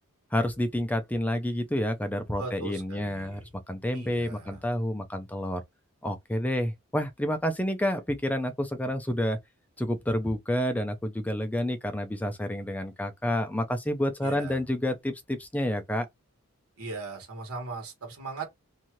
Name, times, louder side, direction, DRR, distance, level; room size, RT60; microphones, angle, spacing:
voice 1, 0.3-3.4 3.7-5.6 6.0-9.4 9.8-16.1, left 1 dB, 5° left, 0.5 m, -29 dB
voice 2, 2.4-3.5 3.9-4.6 14.2-14.6 16.8-18.5, right 3 dB, 85° right, 1.3 m, -39 dB
2.7 x 2.4 x 3.0 m
head